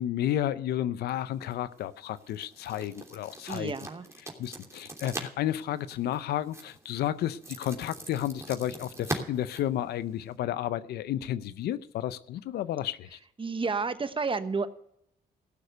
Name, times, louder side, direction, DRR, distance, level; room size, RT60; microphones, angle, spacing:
voice 1, 0.0-3.7 4.4-13.2, left 12 dB, 85° left, 0.6 m, -32 dB
sound 1, 1.3-10.4, right 2 dB, 15° right, 3.1 m, -42 dB
voice 2, 3.5-4.1 13.4-14.7, right 4 dB, 35° right, 1.1 m, -30 dB
16.5 x 6.6 x 6.8 m
cardioid pair, 65°, 16 cm